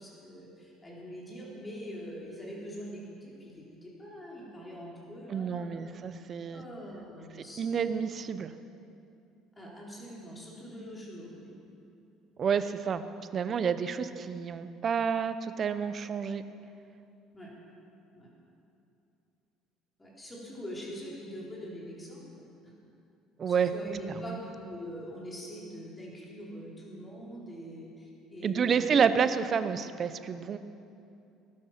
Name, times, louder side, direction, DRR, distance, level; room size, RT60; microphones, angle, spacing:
voice 1, 0.0-5.9 6.5-7.9 9.6-11.5 17.3-17.5 18.1-18.3 20.0-22.7 23.5-29.2, equal, 15° left, -4 dB, 4.1 m, -43 dB
voice 2, 5.3-6.6 7.6-8.5 12.4-13.0 13.3-16.4 23.4-23.7 24.1-24.4 28.4-30.6, right 6 dB, 35° right, 11 dB, 0.8 m, -29 dB
19.0 x 12.0 x 5.9 m, 2.7 s
cardioid pair, 130°, 0 cm